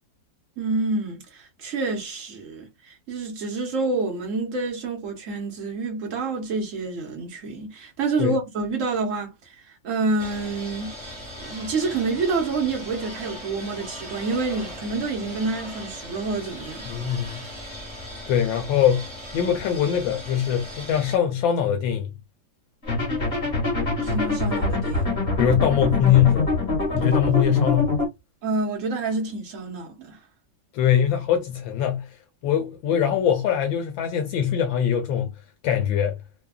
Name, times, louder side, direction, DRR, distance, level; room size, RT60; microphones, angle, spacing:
voice 1, 0.6-9.3 9.8-10.9 11.4-16.9 24.0-25.0 28.4-30.2, right 3 dB, 50° right, 1.1 m, -28 dB
sound 1, 10.2-21.2, equal, 5° left, 1.1 m, -38 dB
voice 2, 16.9-17.4 18.3-19.1 19.3-22.1 25.4-26.5 26.9-27.9 30.7-32.1 32.4-35.3 35.6-36.2, left 9 dB, 80° left, 1.3 m, -22 dB
sound 2, 22.9-28.1, left 3 dB, 35° left, 1.4 m, -24 dB
3.3 x 2.3 x 2.2 m
omnidirectional pair, 2.2 m